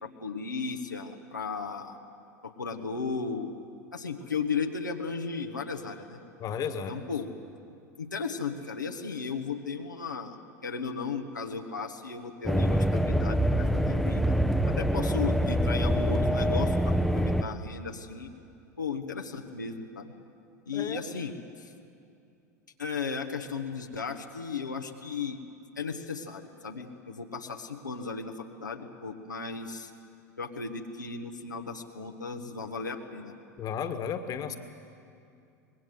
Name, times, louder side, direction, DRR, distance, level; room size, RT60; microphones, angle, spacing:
voice 1, 0.0-2.0 2.4-3.5 3.9-6.2 6.9-7.3 8.0-14.3 14.6-18.3 18.8-20.1 20.7-21.7 22.8-25.4 25.8-29.9 30.4-33.3, left 5 dB, 90° left, 2 dB, 1.3 m, -35 dB
voice 2, 6.4-6.9 20.7-21.0 33.6-34.6, left 7 dB, 40° left, 9 dB, 1.6 m, -33 dB
sound 1, 12.5-17.4, equal, ahead, 0.9 m, -25 dB
25.0 x 20.5 x 7.9 m, 2.5 s
figure-of-eight pair, 85°, 10 cm